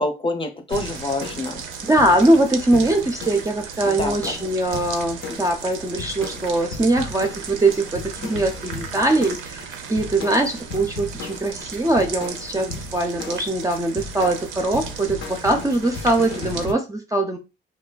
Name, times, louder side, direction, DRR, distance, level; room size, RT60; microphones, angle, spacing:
voice 1, 0.0-1.6 3.8-4.4, left 2 dB, 25° left, 5 dB, 0.6 m, -27 dB
sound 1, 0.7-16.7, left 4 dB, 85° left, 0.6 m, -37 dB
sound 2, 0.7-16.7, right 7 dB, 85° right, 0.5 m, -36 dB
voice 2, 1.8-17.4, right 1 dB, 15° right, 4 dB, 0.4 m, -21 dB
3.1 x 2.2 x 2.2 m, 0.27 s
cardioid pair, 90°, 20 cm